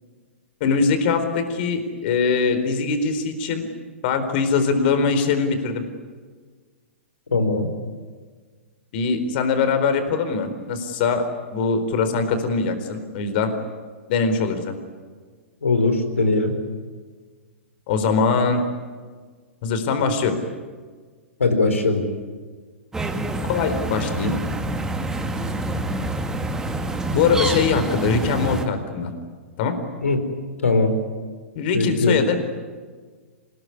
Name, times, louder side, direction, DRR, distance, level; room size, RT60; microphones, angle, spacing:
voice 1, 0.6-3.7 4.0-5.8 8.9-11.2 11.5-13.5 14.1-14.7 17.9-18.6 19.6-20.4 23.5-24.4 27.1-29.1 29.6-29.7 31.6-32.4, left 5 dB, 50° left, 8 dB, 4.3 m, -22 dB
voice 2, 7.3-7.7 15.6-16.6 21.4-22.0 30.0-30.2 30.6-31.0 31.7-32.1, left 3 dB, 80° left, 7 dB, 4.4 m, -20 dB
sound 1, 22.9-28.6, right 2 dB, 10° right, 2.2 m, -27 dB
26.5 x 21.0 x 9.8 m, 1.5 s
hypercardioid pair, 115°, 7 cm